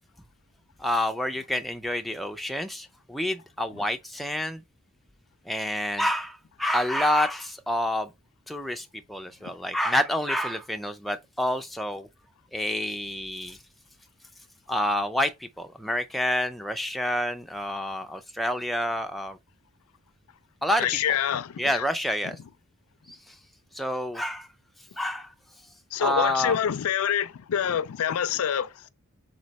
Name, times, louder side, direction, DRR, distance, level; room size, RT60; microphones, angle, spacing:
voice 1, 0.8-4.6 5.5-8.1 8.5-12.1 12.5-13.6 14.7-19.4 20.6-21.2 21.6-22.4 23.1-23.4 23.7-24.5 25.0-25.3 26.0-26.6, left 1 dB, ahead, 0.3 m, -28 dB
voice 2, 20.8-21.8 25.9-28.9, left 9 dB, 70° left, 0.4 m, -26 dB
4.1 x 3.1 x 3.9 m
head